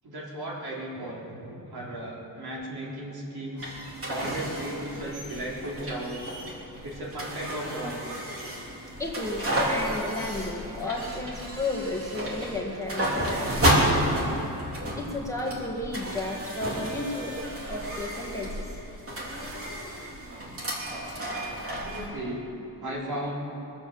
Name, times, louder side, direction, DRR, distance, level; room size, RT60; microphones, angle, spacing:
voice 1, 0.0-3.7 4.1-6.3 6.8-8.0 21.6-22.4 22.8-23.3, right 1 dB, 70° right, -4 dB, 4.1 m, -35 dB
sound 1, 3.6-22.1, right 1 dB, 35° right, 3.3 m, -31 dB
voice 2, 9.0-13.5 14.9-17.4 17.7-18.6, left 2 dB, 10° left, -3 dB, 1.7 m, -33 dB
23.5 x 7.9 x 7.6 m, 3.0 s
wide cardioid pair, 150°, 39 cm